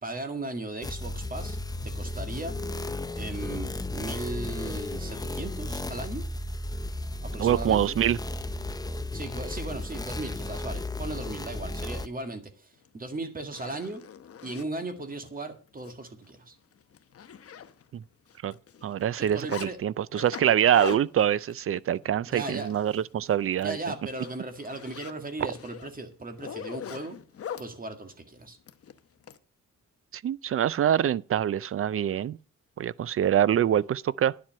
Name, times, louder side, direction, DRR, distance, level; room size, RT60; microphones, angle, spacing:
voice 1, 0.0-1.6 1.8-2.6 3.2-6.3 7.2-8.0 9.1-14.0 14.4-16.6 19.2-19.8 22.3-22.7 23.1-23.2 23.6-27.2 27.6-28.6, right 2 dB, 30° right, 1.9 m, -37 dB
sound 1, 0.8-12.1, left 2 dB, 15° left, 0.6 m, -34 dB
voice 2, 7.4-8.2 17.9-18.0 18.4-18.5 18.8-23.8 25.4-25.5 30.2-32.4 32.8-34.3, right 10 dB, 45° right, 0.4 m, -25 dB
Zipper (clothing), 12.9-13.0 13.4-14.7 15.3-15.4 15.8-15.9 16.3-16.4 16.7-18.0 18.3-19.7 20.1-23.1 23.4-23.7 24.0-27.7 28.7-29.4, left 8 dB, 50° left, 0.9 m, -41 dB
10.5 x 7.6 x 6.5 m
wide cardioid pair, 135°, 30 cm